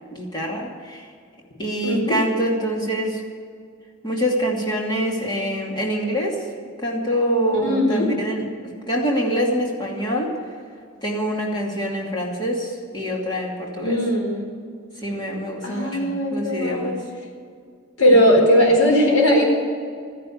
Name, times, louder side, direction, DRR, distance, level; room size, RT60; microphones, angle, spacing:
voice 1, 0.1-1.1 1.6-3.2 4.0-6.4 6.8-8.4 8.9-10.3 11.0-14.0 15.0-17.0, equal, 20° left, -1 dB, 2.5 m, -25 dB
voice 2, 1.8-2.2 7.6-8.1 13.8-14.4 15.6-17.0 18.0-19.4, equal, 75° left, 0 dB, 4.6 m, -18 dB
14.0 x 10.5 x 8.6 m, 2.2 s
head